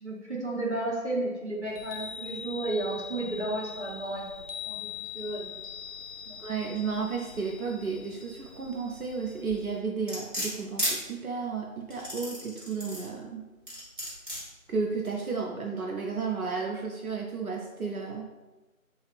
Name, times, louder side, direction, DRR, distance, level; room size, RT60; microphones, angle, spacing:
voice 1, 0.0-4.2 4.6-4.9 5.1-5.4 6.3-6.4, right 2 dB, 55° right, -4 dB, 1.0 m, -32 dB
Chime, 1.7-9.8, left 6 dB, 65° left, 0.6 m, -42 dB
voice 2, 6.4-13.4 14.7-18.2, right 5 dB, 85° right, -1 dB, 0.7 m, -33 dB
sound 1, 10.1-10.9 11.9-13.1 13.7-14.4 15.0-15.1, equal, 35° right, 1.3 m, -32 dB
3.2 x 2.4 x 3.3 m, 1.1 s
figure-of-eight pair, 180°, 42 cm